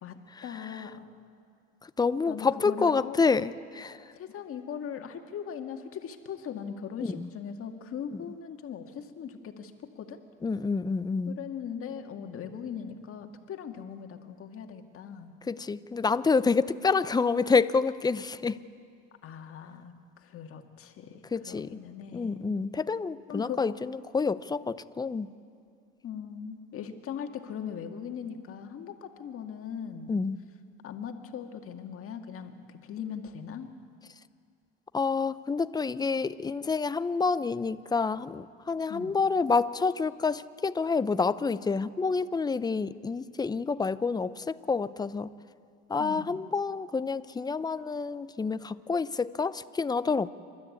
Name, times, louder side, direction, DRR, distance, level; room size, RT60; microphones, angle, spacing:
voice 1, 0.0-1.1 2.3-3.2 4.1-10.2 11.3-15.3 19.2-22.6 23.3-23.7 26.0-30.2 30.8-33.7 38.9-39.1 46.0-46.4, left 7 dB, 50° left, 5 dB, 1.9 m, -40 dB
voice 2, 2.0-4.0 7.0-7.3 10.4-11.4 15.5-18.6 21.3-21.8 22.1-25.3 30.1-30.4 34.9-45.3 45.9-50.3, left 4 dB, 15° left, 14 dB, 0.6 m, -28 dB
28.5 x 13.0 x 8.4 m, 2.3 s
supercardioid pair, 95°, 29 cm